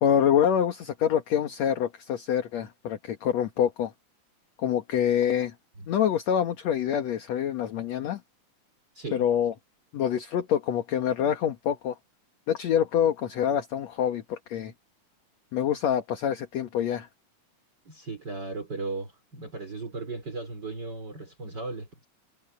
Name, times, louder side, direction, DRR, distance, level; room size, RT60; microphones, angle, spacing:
voice 1, 0.0-3.9 4.6-5.5 5.9-8.2 9.1-9.5 9.9-12.0 12.5-14.7 15.5-17.1, left 9 dB, 60° left, 2.5 m, -26 dB
voice 2, 8.9-9.2 17.8-22.1, right 3 dB, 30° right, 5.1 m, -36 dB
omnidirectional pair, 3.7 m